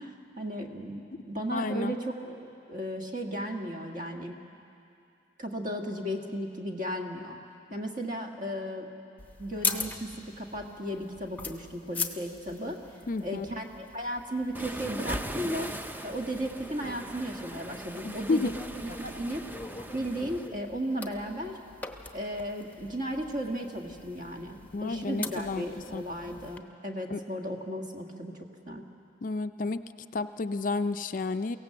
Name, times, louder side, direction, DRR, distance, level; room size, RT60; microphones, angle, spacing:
voice 1, 0.0-2.4 2.7-4.4 5.4-7.4 7.7-8.9 9.4-12.8 13.2-15.7 16.0-19.4 19.9-21.6 22.1-28.3 28.7-28.9, equal, 40° right, 2 dB, 1.7 m, -35 dB
voice 2, 1.5-2.0 13.1-13.5 18.0-18.6 24.7-26.0 27.1-27.2 29.2-29.8 30.1-31.6, left 3 dB, 45° left, 10 dB, 0.4 m, -31 dB
sound 1, 9.2-26.6, left 4 dB, 10° left, 0.8 m, -41 dB
Waves surf, 14.5-20.5, right 1 dB, 10° right, 0.5 m, -40 dB
23.5 x 17.0 x 7.8 m, 2.6 s
head